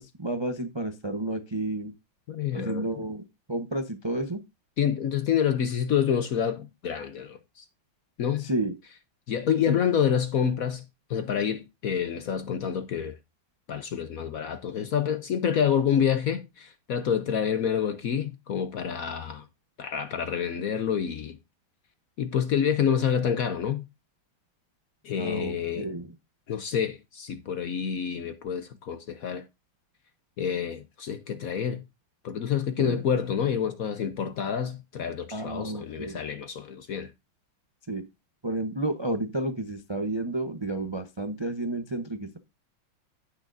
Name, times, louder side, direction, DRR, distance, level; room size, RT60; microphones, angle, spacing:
voice 1, 0.0-1.9 2.5-4.4 8.4-8.7 9.7-9.8 25.2-26.1 32.8-33.0 35.3-36.2 37.9-38.0 38.4-42.4, right 1 dB, 45° right, 0.3 m, -31 dB
voice 2, 2.3-2.9 4.8-7.6 8.2-8.5 9.3-10.8 11.1-13.1 13.7-19.5 19.8-21.4 22.2-23.8 25.0-25.9 26.5-29.5 30.4-31.8 32.2-37.1, left 8 dB, 65° left, 0.8 m, -28 dB
16.0 x 6.3 x 2.6 m
omnidirectional pair, 2.3 m